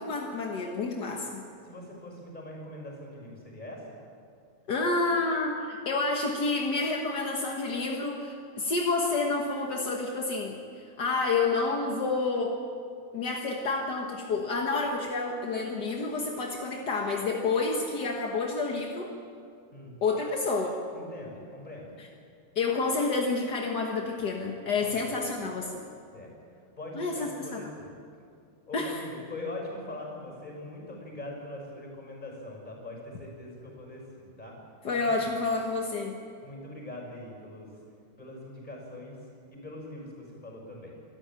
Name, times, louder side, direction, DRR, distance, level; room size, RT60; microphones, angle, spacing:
voice 1, 0.0-1.4 4.7-12.5 13.1-19.1 20.0-20.8 22.0-22.1 22.5-25.8 26.9-27.7 28.7-29.0 34.8-36.2, left 3 dB, 50° left, 1 dB, 1.3 m, -29 dB
voice 2, 1.6-3.8 19.7-19.9 20.9-21.9 24.8-24.9 25.4-25.6 26.1-26.3 26.8-27.9 28.7-34.6 34.9-35.0 36.4-37.7 38.2-39.2 39.5-40.9, left 1 dB, 15° left, 0 dB, 6.2 m, -42 dB
25.5 x 13.5 x 8.9 m, 2.4 s
omnidirectional pair, 3.6 m